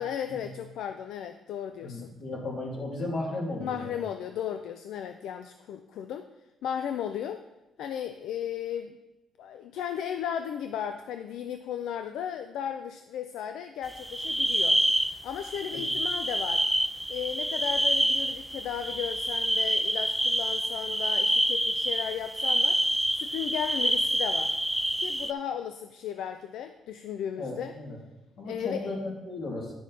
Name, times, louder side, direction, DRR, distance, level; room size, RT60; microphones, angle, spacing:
voice 1, 0.0-2.1 3.6-6.3 6.6-7.4 7.8-9.0 9.4-14.8 15.2-16.7 17.1-22.8 23.1-24.6 25.0-27.7 28.4-28.9, left 9 dB, 85° left, 8 dB, 0.4 m, -35 dB
voice 2, 1.8-3.9 15.7-15.8 27.4-28.0 28.4-29.7, left 2 dB, 65° left, -3 dB, 2.8 m, -35 dB
sound 1, 13.9-25.3, right 1 dB, 5° right, 0.4 m, -27 dB
10.0 x 6.3 x 4.2 m, 1.0 s
cardioid pair, 90°, 0 cm